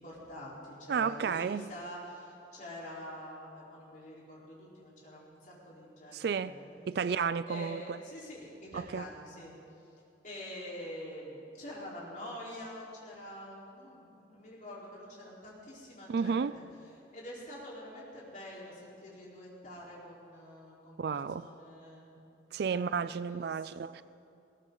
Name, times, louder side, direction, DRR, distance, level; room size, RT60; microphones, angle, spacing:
voice 1, 0.0-6.9 7.5-9.5 10.2-16.6 17.1-22.2 22.7-24.0, left 1 dB, 45° left, 4.1 m, -46 dB
voice 2, 0.9-1.7 6.1-6.5 6.9-8.0 8.7-9.1 16.1-16.5 21.0-21.5 22.5-24.0, right 6 dB, 60° right, 0.3 m, -32 dB
19.0 x 18.5 x 3.9 m
head